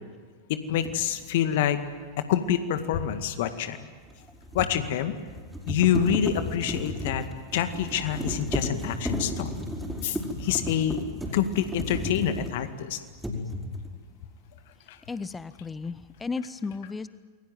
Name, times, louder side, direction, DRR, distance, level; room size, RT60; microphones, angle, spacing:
voice 1, 0.7-1.8 2.3-3.8 4.5-5.1 5.7-7.2 7.5-9.5 10.0-11.0 11.3-13.0 14.9-15.0, left 9 dB, 50° left, 9 dB, 2.0 m, -26 dB
sound 1, 0.8-1.0 4.0-12.8 13.2-14.0, equal, 5° right, 5.3 m, -34 dB
voice 2, 15.1-17.1, left 4 dB, 15° left, 16 dB, 1.1 m, -34 dB
28.0 x 22.0 x 9.5 m, 1.5 s
figure-of-eight pair, 90°, 0 cm